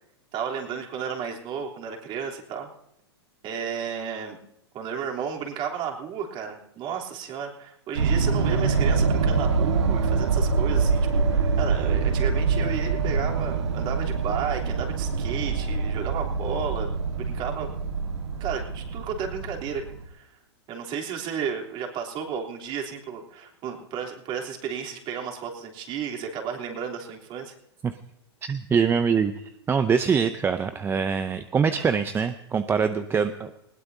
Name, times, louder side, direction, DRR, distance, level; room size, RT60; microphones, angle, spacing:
voice 1, 0.3-2.7 3.4-4.4 4.7-17.7 18.4-20.3 20.7-27.5, right 7 dB, 35° right, 1 dB, 3.4 m, -33 dB
sound 1, 8.0-20.0, right 4 dB, 90° right, 1.7 m, -25 dB
voice 2, 28.4-33.5, right 6 dB, 15° right, 10 dB, 0.6 m, -24 dB
20.5 x 18.0 x 2.8 m, 0.81 s
hypercardioid pair, 125°, 14 cm